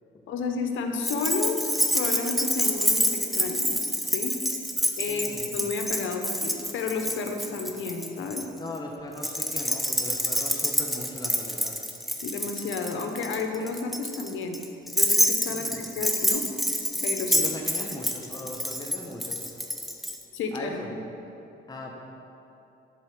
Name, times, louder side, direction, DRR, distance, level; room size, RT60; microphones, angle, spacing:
voice 1, 0.3-3.8 4.1-4.4 5.0-8.4 12.2-14.6 14.9-16.5 17.0-17.5 17.9-18.0 20.3-21.0, left 4 dB, 80° left, 4 dB, 1.1 m, -31 dB
Keys jangling, 1.0-8.4 9.2-20.2, equal, ahead, 0.8 m, -27 dB
voice 2, 5.1-5.7 8.5-11.8 15.5-15.8 17.3-19.4 20.5-20.9 21.7-22.0, left 1 dB, 20° left, 0 dB, 1.1 m, -39 dB
11.5 x 4.3 x 6.7 m, 2.9 s
cardioid pair, 90°, 20 cm